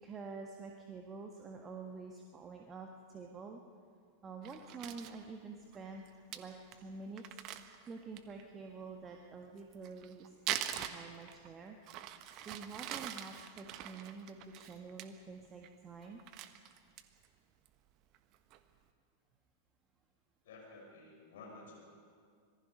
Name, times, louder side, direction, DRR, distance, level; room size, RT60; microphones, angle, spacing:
voice 1, 0.0-3.6 4.2-11.8 12.4-16.2, right 4 dB, 20° right, 3 dB, 1.5 m, -48 dB
Crumpling crinkling, 4.4-5.2 5.7-5.8 6.1-6.2 6.3-6.4 6.7-6.8 7.2-8.4 9.6-11.5 11.9-15.1 15.4-15.7 16.0-17.3 17.7-17.8 18.1-18.6, right 11 dB, 40° right, 1.2 m, -43 dB
voice 2, 20.4-21.9, left 3 dB, 60° left, 0 dB, 5.3 m, -53 dB
26.0 x 19.5 x 5.5 m, 2.1 s
figure-of-eight pair, 90°, 0 cm